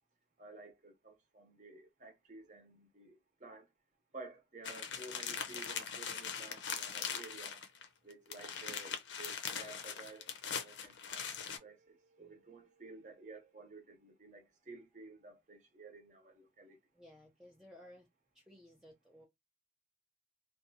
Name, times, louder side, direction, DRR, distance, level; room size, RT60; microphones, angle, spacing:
voice 1, 0.4-3.7 4.1-7.6 8.0-10.3 10.6-16.8, right 3 dB, 40° right, 0.7 m, -53 dB
sound 1, 4.6-7.9 8.1-11.6, left 7 dB, 75° left, 0.6 m, -41 dB
voice 2, 16.9-18.1 18.3-19.3, left 1 dB, 5° right, 0.3 m, -58 dB
2.5 x 2.3 x 2.6 m
head